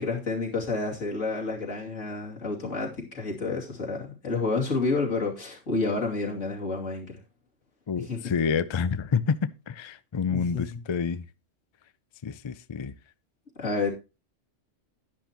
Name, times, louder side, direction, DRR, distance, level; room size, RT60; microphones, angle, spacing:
voice 1, 0.0-7.2 8.0-8.3 10.3-10.8 13.6-13.9, left 3 dB, 80° left, 3.0 m, -30 dB
voice 2, 7.9-11.3 12.2-12.9, left 6 dB, 50° left, 0.3 m, -28 dB
10.5 x 10.5 x 2.9 m
omnidirectional pair, 1.3 m